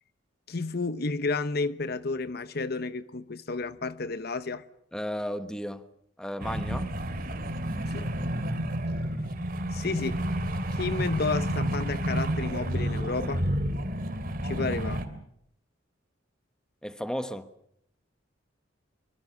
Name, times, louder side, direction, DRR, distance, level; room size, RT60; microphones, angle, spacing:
voice 1, 0.5-4.6 7.9-8.1 9.7-10.2 10.7-13.4 14.4-15.0, left 3 dB, 55° left, 0.9 m, -31 dB
voice 2, 4.9-5.9 6.2-6.9 16.8-17.5, equal, 5° left, 1.2 m, -34 dB
sound 1, 6.4-15.0, equal, 50° right, 2.9 m, -30 dB
24.5 x 24.0 x 7.1 m
head